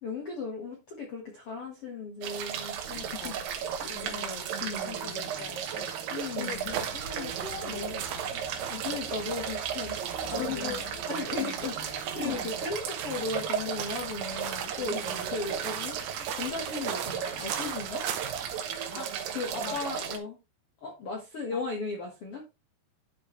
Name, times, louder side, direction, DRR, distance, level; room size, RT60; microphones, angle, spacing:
voice 1, 0.0-3.3 3.8-4.1 4.6-5.0 6.1-6.7 8.7-15.0 15.3-18.1 19.3-20.3 20.8-22.5, left 4 dB, 60° left, 1.5 m, -36 dB
sound 1, 2.2-20.2, right 8 dB, 75° right, 3.1 m, -35 dB
voice 2, 2.9-3.4 3.9-4.5 4.8-6.0 6.3-8.7 10.3-11.0 11.4-11.6 12.2-12.4 14.9-15.3 18.9-19.1 19.6-20.1 21.5-21.6, left 9 dB, 80° left, 1.9 m, -42 dB
sound 2, 6.5-18.6, right 8 dB, 90° right, 1.6 m, -40 dB
12.0 x 5.0 x 3.2 m
omnidirectional pair, 4.9 m